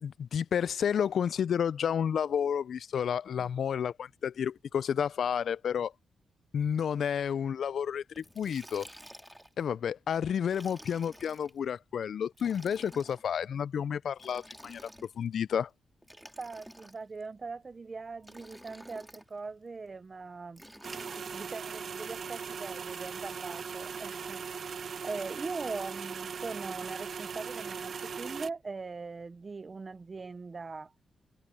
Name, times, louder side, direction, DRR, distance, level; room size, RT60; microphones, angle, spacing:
voice 1, 0.0-5.9 6.5-8.9 9.6-14.8 15.2-15.7, left 8 dB, 70° left, 0.3 m, -31 dB
Liquid, 8.2-9.6 10.4-11.5 12.3-13.2 14.1-15.3 16.0-17.2 18.2-19.3 20.6-21.6, equal, ahead, 1.9 m, -51 dB
voice 2, 16.4-20.6 21.3-24.4 24.7-30.9, right 4 dB, 35° right, 0.5 m, -41 dB
sound 1, 20.8-28.5, right 6 dB, 55° right, 0.8 m, -39 dB
cardioid pair, 105°, 0 cm